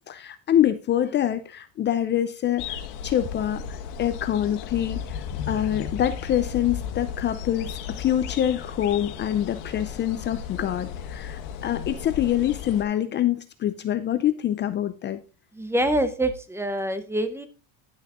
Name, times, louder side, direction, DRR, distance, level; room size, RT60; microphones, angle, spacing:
voice 1, 0.1-2.8 3.0-15.2, left 11 dB, 30° left, 0.5 m, -25 dB
sound 1, 2.6-12.8, left 7 dB, 90° left, 1.4 m, -35 dB
voice 2, 15.6-17.5, right 1 dB, 5° right, 0.7 m, -25 dB
10.5 x 6.3 x 3.6 m
cardioid pair, 145°, 35 cm